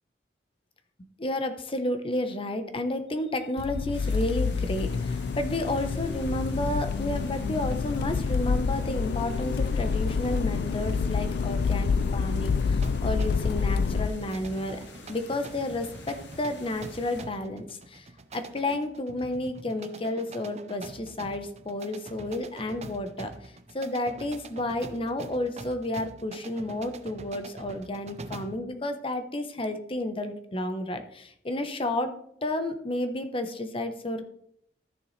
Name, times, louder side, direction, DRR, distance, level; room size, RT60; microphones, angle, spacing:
voice 1, 1.2-14.8 15.1-18.1 18.3-32.1 32.4-34.2, left 1 dB, 30° left, 8 dB, 0.9 m, -31 dB
Accelerating revving vroom, 3.6-14.1, left 5 dB, 60° left, 0.3 m, -27 dB
sound 1, 3.9-17.2, left 2 dB, 90° left, 1.7 m, -47 dB
sound 2, 12.8-28.7, right 3 dB, 40° right, 0.6 m, -45 dB
13.0 x 6.9 x 3.2 m, 0.69 s
head